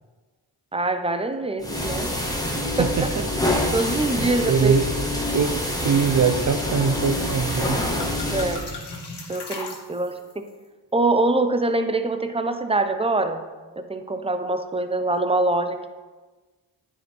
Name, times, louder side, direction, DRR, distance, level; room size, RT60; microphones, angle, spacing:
voice 1, 0.7-2.1 2.8-2.9 3.7-4.7 8.3-8.6 9.3-10.5 10.9-13.4 13.8-15.9, right 2 dB, 10° right, 8 dB, 0.8 m, -24 dB
sound 1, 1.6-8.6, left 1 dB, 10° left, 1.8 m, -26 dB
voice 2, 2.6-3.2 4.2-4.9 5.3-7.8, right 6 dB, 40° right, 6 dB, 0.6 m, -23 dB
sound 2, 6.9-7.0 7.3-10.3, left 3 dB, 55° left, 2.0 m, -37 dB
9.5 x 5.0 x 4.6 m, 1.3 s
cardioid pair, 40°, 48 cm